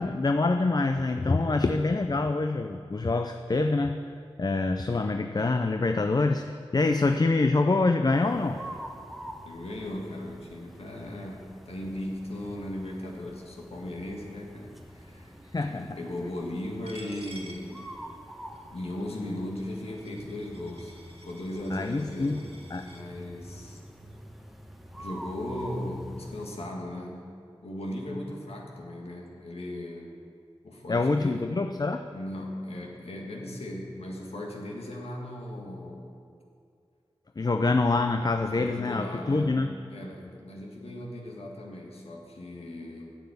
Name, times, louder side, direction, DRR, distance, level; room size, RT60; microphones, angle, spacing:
voice 1, 0.0-4.0 4.4-8.6 15.5-16.0 21.7-22.4 22.7-22.9 30.9-32.1 37.4-39.7, left 3 dB, 40° left, 6 dB, 0.5 m, -25 dB
sound 1, 8.1-26.5, right 1 dB, ahead, 1.1 m, -46 dB
voice 2, 9.2-15.4 15.7-17.8 18.7-20.9 21.2-23.8 24.9-27.3 27.6-30.1 30.6-31.5 32.1-36.2 38.4-43.1, left 1 dB, 85° left, -1 dB, 1.7 m, -37 dB
Coin (dropping), 16.9-23.0, right 2 dB, 75° right, 2.0 m, -51 dB
9.3 x 7.0 x 8.1 m, 2.4 s
cardioid pair, 40°, 10 cm